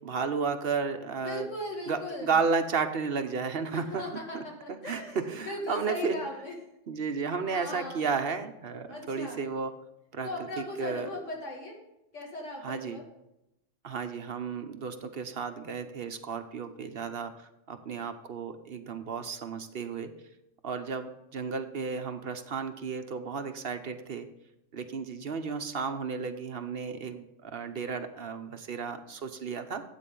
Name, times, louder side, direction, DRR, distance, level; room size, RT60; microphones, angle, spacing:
voice 1, 0.0-1.5 1.9-4.0 4.3-4.4 4.8-6.2 6.9-9.7 10.1-10.3 10.6-11.1 12.6-13.0 13.8-17.3 17.7-20.1 20.6-24.3 24.7-29.8, right 5 dB, 55° right, 8 dB, 1.0 m, -33 dB
voice 2, 1.2-2.4 3.7-6.6 7.0-7.2 7.5-8.1 8.9-9.4 10.2-11.8 12.1-13.0, left 1 dB, 80° left, -1 dB, 2.7 m, -38 dB
12.5 x 8.5 x 3.8 m, 0.88 s
omnidirectional pair, 1.2 m